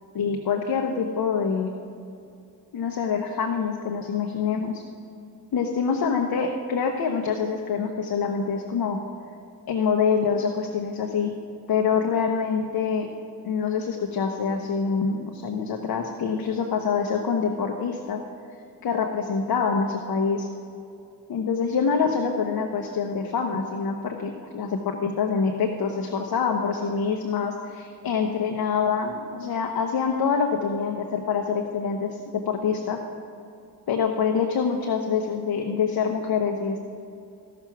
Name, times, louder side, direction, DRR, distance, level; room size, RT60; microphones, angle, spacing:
voice 1, 0.1-1.7 2.7-4.8 5.5-9.0 9.7-11.3 11.7-13.1 13.4-18.2 18.8-20.5 21.3-33.0 33.9-36.8, left 6 dB, 65° left, 3 dB, 0.9 m, -25 dB
15.0 x 6.0 x 5.8 m, 2.6 s
cardioid pair, 90°, 38 cm